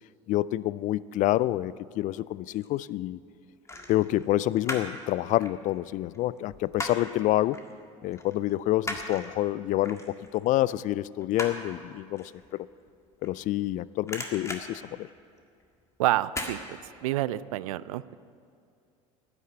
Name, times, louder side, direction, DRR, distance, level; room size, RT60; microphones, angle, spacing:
voice 1, 0.3-3.2 3.9-7.6 8.0-12.7 13.2-15.1, left 15 dB, 45° left, 20 dB, 0.4 m, -28 dB
sound 1, 2.2-2.8 3.6-5.0 5.3-7.2 7.5-7.7 8.1-13.7 14.0-15.6 16.3-16.6 17.0-17.1, left 2 dB, 15° left, 1.8 m, -38 dB
voice 2, 16.0-18.2, right 15 dB, 75° right, 18 dB, 0.4 m, -29 dB
11.0 x 9.7 x 8.0 m, 2.4 s
hypercardioid pair, 75°, 18 cm